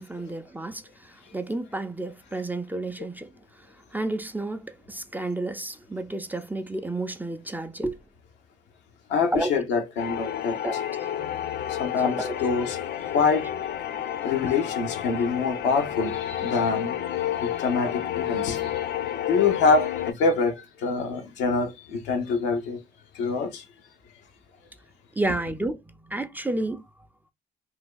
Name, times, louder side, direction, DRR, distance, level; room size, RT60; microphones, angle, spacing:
voice 1, 0.0-3.3 3.9-8.0 9.3-9.5 10.6-10.8 12.0-12.4 14.5-14.6 25.2-26.8, right 2 dB, 10° right, 0.5 m, -31 dB
voice 2, 9.1-10.6 11.7-12.8 13.1-13.5 14.2-17.0 17.4-18.8 19.3-22.8 23.1-23.6, left 4 dB, 80° left, 0.8 m, -25 dB
sound 1, 10.0-20.1, left 11 dB, 65° left, 0.4 m, -30 dB
2.6 x 2.2 x 3.6 m
supercardioid pair, 55°, 18 cm